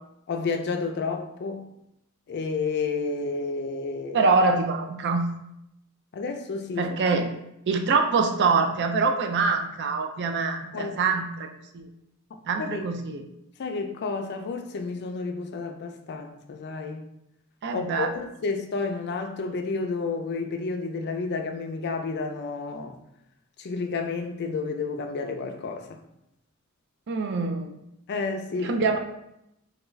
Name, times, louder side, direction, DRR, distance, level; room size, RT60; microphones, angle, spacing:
voice 1, 0.3-1.7 2.3-4.3 6.1-6.9 10.7-11.0 12.6-12.9 13.6-17.1 17.7-23.0 23.6-26.0 28.1-28.7, left 4 dB, 50° left, 0.4 m, -31 dB
voice 2, 4.1-5.3 6.8-7.3 7.7-11.5 11.7-11.9 12.5-13.2 17.6-18.1 27.1-27.7 28.6-29.0, right 4 dB, 55° right, 0.4 m, -24 dB
3.4 x 2.3 x 3.1 m
head